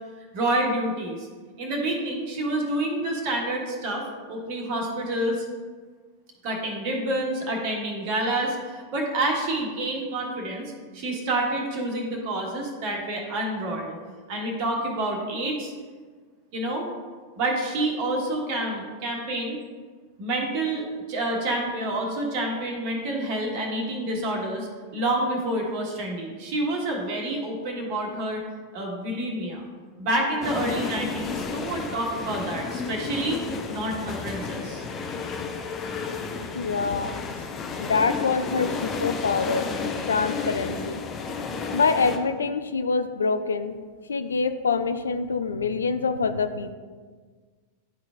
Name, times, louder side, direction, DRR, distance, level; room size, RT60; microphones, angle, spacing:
voice 1, 0.3-1.3 1.6-5.4 6.4-14.0 14.3-15.7 16.5-16.9 17.3-19.6 20.2-28.4 28.7-29.7 30.0-33.4 33.7-34.8, right 1 dB, 45° right, 0 dB, 1.4 m, -28 dB
sound 1, 30.4-42.2, left 4 dB, 25° left, 0.7 m, -32 dB
voice 2, 36.5-37.2 37.8-39.7 40.1-41.0 41.7-43.8 44.1-46.7, left 4 dB, 70° left, 10 dB, 0.4 m, -25 dB
11.0 x 4.0 x 2.5 m, 1.5 s
figure-of-eight pair, 90°, 0 cm